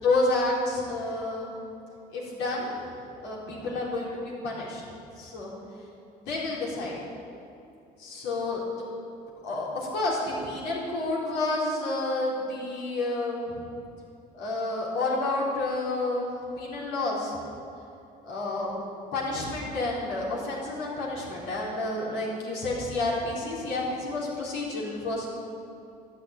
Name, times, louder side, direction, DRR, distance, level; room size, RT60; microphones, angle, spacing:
voice 1, 0.0-1.5 2.1-2.8 3.2-4.8 5.2-5.5 6.2-7.0 8.0-8.6 9.4-13.7 14.3-17.4 18.2-18.8 19.1-25.3, left 2 dB, 90° left, -5 dB, 4.3 m, -30 dB
13.0 x 8.6 x 9.1 m, 2.6 s
cardioid pair, 110°, 17 cm